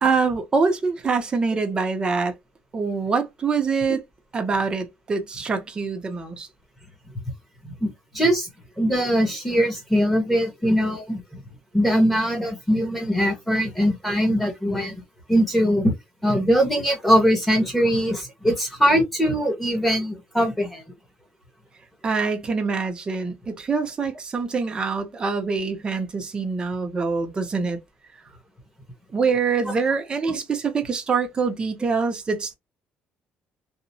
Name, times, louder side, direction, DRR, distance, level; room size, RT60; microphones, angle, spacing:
voice 1, 0.0-2.3 2.7-4.0 4.3-6.5 22.0-27.8 29.1-32.5, right 4 dB, 25° right, 0.6 m, -24 dB
voice 2, 7.6-8.5 8.8-11.2 11.7-14.9 15.3-15.9 16.2-20.8 30.2-30.4, equal, 5° left, 1.0 m, -21 dB
2.8 x 2.0 x 2.6 m
cardioid pair, 155°, 4 cm